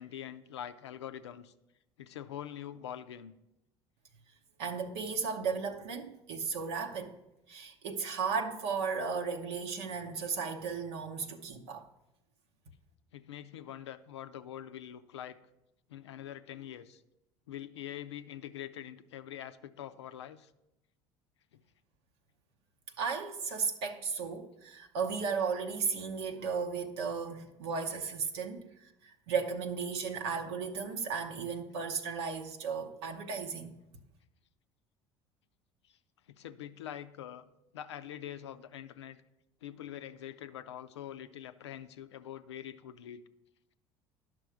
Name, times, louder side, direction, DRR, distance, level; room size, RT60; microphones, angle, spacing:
voice 1, 0.0-1.5 2.0-3.3 13.1-15.4 15.9-17.0 17.5-20.5 21.5-21.6 35.8-36.0 36.3-37.4 37.7-39.2 39.6-43.2, left 10 dB, 85° left, 0.5 m, -44 dB
voice 2, 4.6-7.1 7.5-11.9 23.0-33.8, right 5 dB, 75° right, 0.8 m, -35 dB
10.5 x 6.0 x 4.7 m
hypercardioid pair, 70°, 14 cm